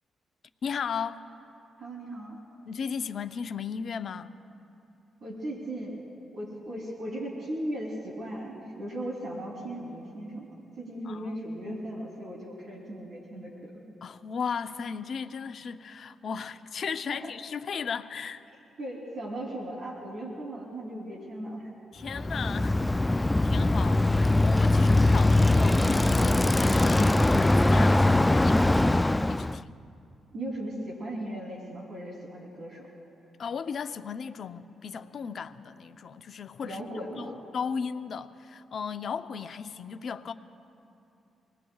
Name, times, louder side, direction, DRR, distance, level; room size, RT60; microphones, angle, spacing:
voice 1, 0.6-1.2 2.7-4.3 11.0-11.4 11.6-11.8 14.0-18.4 21.9-29.8 33.4-36.8 37.1-40.3, left 6 dB, 60° left, 0.6 m, -36 dB
voice 2, 1.8-2.4 5.2-6.0 6.3-10.5 10.8-13.8 17.1-17.3 18.8-21.7 30.3-32.9 36.6-37.4, right 1 dB, 60° right, 3.2 m, -37 dB
Bicycle, 22.1-29.6, left 2 dB, 15° left, 0.3 m, -22 dB
26.0 x 19.0 x 2.4 m
supercardioid pair, 60°, 0 cm